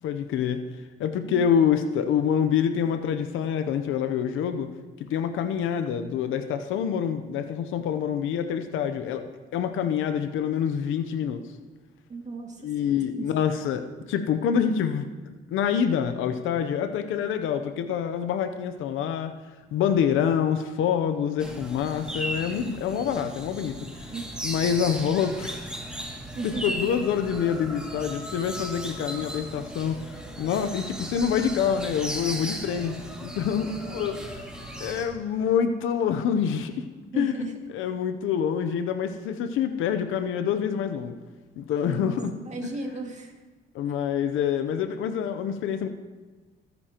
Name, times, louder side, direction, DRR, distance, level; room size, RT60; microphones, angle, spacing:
voice 1, 0.0-0.6 1.0-4.7 5.0-9.2 9.5-11.4 12.6-19.3 19.7-24.1 24.4-25.6 25.9-26.2 26.4-34.2 34.8-36.9 37.1-41.2 41.6-42.3 42.6-42.8 43.7-45.9, left 8 dB, 85° left, 9 dB, 0.7 m, -26 dB
voice 2, 12.1-12.7 13.2-13.3 24.1-24.3 26.4-26.8 33.7-34.1 37.1-37.6 41.8-43.3, right 3 dB, 35° right, 2 dB, 2.2 m, -35 dB
sound 1, 21.4-35.0, equal, 5° right, 2.3 m, -36 dB
18.0 x 9.7 x 3.0 m, 1.3 s
cardioid pair, 90°, 20 cm